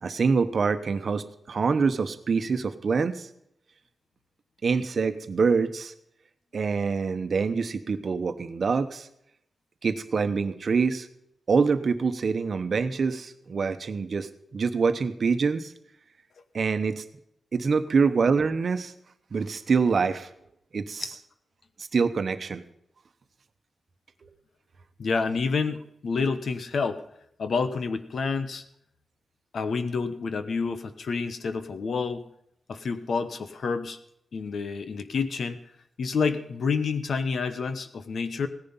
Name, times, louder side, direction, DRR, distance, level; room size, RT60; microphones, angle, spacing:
voice 1, 0.0-3.3 4.6-5.9 6.5-9.1 9.8-11.1 11.5-15.7 16.5-17.0 17.5-18.9 19.3-20.3 20.7-21.1 21.9-22.6, right 5 dB, 50° right, 11 dB, 1.0 m, -25 dB
voice 2, 25.0-27.0 27.4-28.6 29.5-32.2 32.7-34.0 34.3-35.6 36.0-38.5, left 5 dB, 65° left, 10 dB, 1.0 m, -28 dB
16.5 x 10.5 x 5.6 m, 0.77 s
wide cardioid pair, 160°, 0 cm